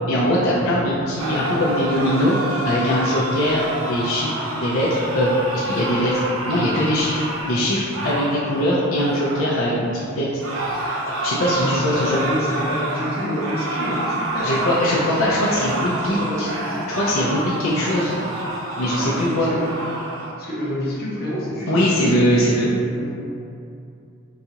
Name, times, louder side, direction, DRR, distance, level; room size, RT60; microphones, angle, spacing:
voice 1, 0.1-2.4 2.6-10.3 11.2-12.2 14.4-16.5 16.9-18.1 18.8-19.5 21.7-22.7, equal, 85° left, -6 dB, 0.5 m, -21 dB
sound 1, 1.2-9.7 10.4-20.3, right 2 dB, 80° right, 0.5 m, -28 dB
voice 2, 11.6-14.6 15.1-15.2 16.1-16.9 17.6-17.8 18.9-19.7 20.4-22.6 22.9-23.1, equal, 50° left, -7 dB, 0.8 m, -28 dB
3.9 x 2.4 x 2.8 m, 2.6 s
head